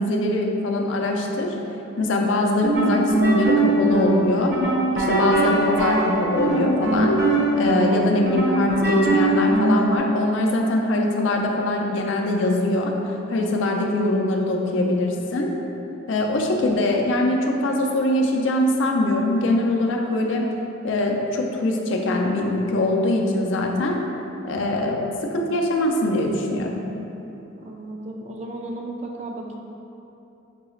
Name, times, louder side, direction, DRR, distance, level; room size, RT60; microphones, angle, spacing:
voice 1, 0.0-1.5 2.0-4.5 4.9-7.2 7.5-12.9 13.3-15.5 16.1-20.5 20.8-24.0 24.4-25.0 25.3-26.7, left 1 dB, 70° left, 1 dB, 0.4 m, -22 dB
sound 1, 2.6-10.0, right 2 dB, 60° right, 0.7 m, -21 dB
voice 2, 27.6-29.6, right 2 dB, 35° right, 0 dB, 0.3 m, -34 dB
5.8 x 2.3 x 3.1 m, 3.0 s
head